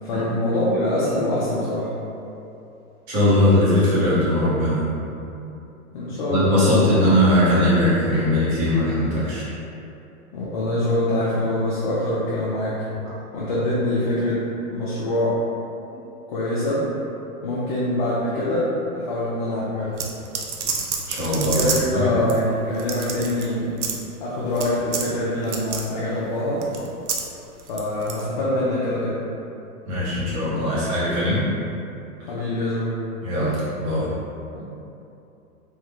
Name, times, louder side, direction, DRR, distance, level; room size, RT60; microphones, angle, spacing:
voice 1, 0.0-1.9 5.9-7.0 10.3-12.8 13.3-14.4 14.7-15.4 16.3-16.9 17.4-20.0 21.3-23.7 24.2-26.7 27.7-29.2 32.3-33.0 34.5-34.7, left 1 dB, 35° left, -8 dB, 0.4 m, -24 dB
voice 2, 3.1-4.8 6.3-9.4 21.1-21.6 21.9-22.1 29.9-31.5 33.2-34.1, left 1 dB, 30° right, -9 dB, 1.1 m, -20 dB
sound 1, 20.0-21.9 22.3-22.4 22.7-23.5 23.8-24.0 24.5-24.7 24.9-25.1 25.4-25.8 26.6-27.3 27.6-28.2, right 6 dB, 50° right, 0.5 m, -28 dB
3.7 x 2.4 x 2.9 m, 2.8 s
hypercardioid pair, 145°, 46 cm